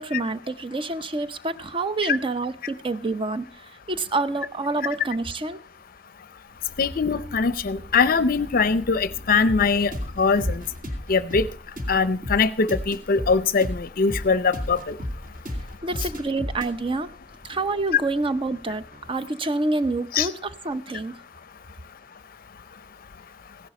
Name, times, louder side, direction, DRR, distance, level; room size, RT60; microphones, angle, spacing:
voice 1, 0.0-5.6 15.8-17.1 17.4-21.2, right 2 dB, 30° right, 13 dB, 0.6 m, -27 dB
sound 1, 6.5-11.4, left 1 dB, 80° right, 3.7 m, -44 dB
voice 2, 6.8-9.9 10.2-10.6 11.1-11.5 11.9-15.0 20.1-20.3, left 4 dB, 50° left, 14 dB, 0.5 m, -22 dB
sound 2, 9.5-19.1, left 1 dB, 45° right, 2.5 m, -35 dB
16.0 x 11.0 x 4.2 m, 0.39 s
head